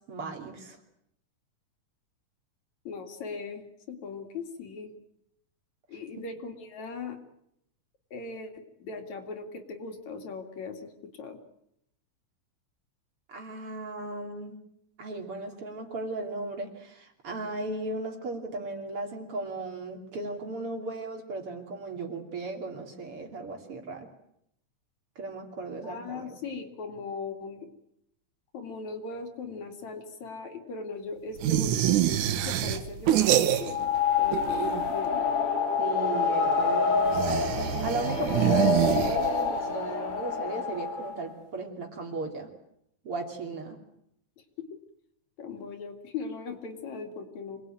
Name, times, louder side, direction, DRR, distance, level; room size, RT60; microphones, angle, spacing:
voice 1, 0.1-0.8 6.2-6.3 13.3-14.6 15.0-24.1 25.2-26.4 35.8-42.5 43.0-43.8, right 3 dB, 45° right, 3 dB, 3.8 m, -36 dB
voice 2, 2.9-4.9 5.9-7.2 8.1-11.4 14.1-14.2 25.8-27.7 28.5-31.8 32.2-33.8 34.2-35.3 44.6-44.8 45.4-47.6, left 4 dB, 65° left, 5 dB, 3.6 m, -39 dB
sound 1, 31.4-34.0 34.2-35.1 37.1-39.6, right 11 dB, 80° right, 2.6 m, -26 dB
sound 2, 33.6-41.3, left 5 dB, 85° left, 4.3 m, -27 dB
26.5 x 19.5 x 9.2 m, 0.78 s
omnidirectional pair, 3.5 m